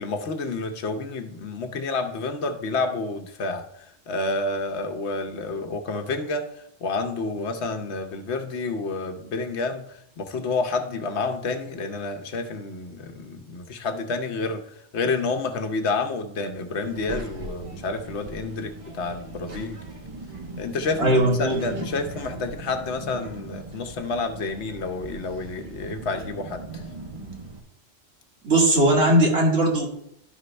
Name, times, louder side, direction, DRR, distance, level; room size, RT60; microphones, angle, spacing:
voice 1, 0.0-3.6 4.1-6.5 6.8-9.8 10.2-14.6 14.9-19.8 20.6-26.6, left 3 dB, 80° left, 6 dB, 1.1 m, -29 dB
Child speech kid speaking, 16.8-27.6, right 2 dB, 30° right, 1.0 m, -39 dB
voice 2, 21.0-21.5 28.4-29.9, right 1 dB, 80° right, -3 dB, 2.2 m, -19 dB
12.0 x 5.2 x 3.2 m, 0.75 s
omnidirectional pair, 1.1 m